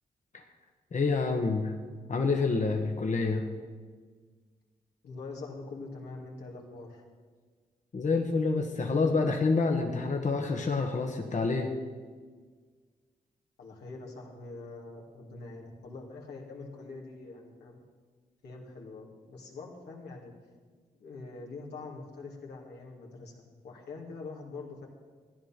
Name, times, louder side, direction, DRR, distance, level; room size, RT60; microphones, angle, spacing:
voice 1, 0.9-1.8 2.1-3.5 7.9-11.7, left 4 dB, 45° left, 2 dB, 1.4 m, -28 dB
voice 2, 5.0-7.0 13.6-17.8 18.4-20.3 20.9-24.9, left 3 dB, 85° left, -2 dB, 2.5 m, -44 dB
14.5 x 10.0 x 5.9 m, 1.5 s
supercardioid pair, 50°, 17 cm